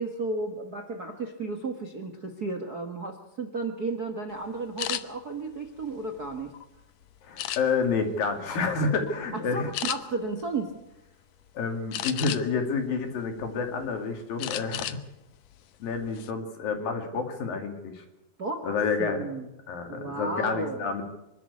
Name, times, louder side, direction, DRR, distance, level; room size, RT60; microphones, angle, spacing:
voice 1, 0.0-6.5 9.5-10.7 18.4-18.7 19.0-19.5 19.9-20.9, right 3 dB, 70° right, 6 dB, 0.9 m, -33 dB
sound 1, 4.8-5.0 5.7-6.6 7.4-8.0 8.5-8.7 9.1-9.2 9.7-10.0 11.9-12.6 13.1-13.9 14.4-15.0 15.3-15.5 15.9-16.3, left 12 dB, 85° left, 1.5 m, -33 dB
voice 2, 7.2-9.7 11.6-15.0 15.8-18.0 18.6-19.3 19.7-21.0, left 4 dB, 65° left, 5 dB, 4.2 m, -29 dB
26.0 x 12.5 x 8.3 m, 0.91 s
omnidirectional pair, 4.4 m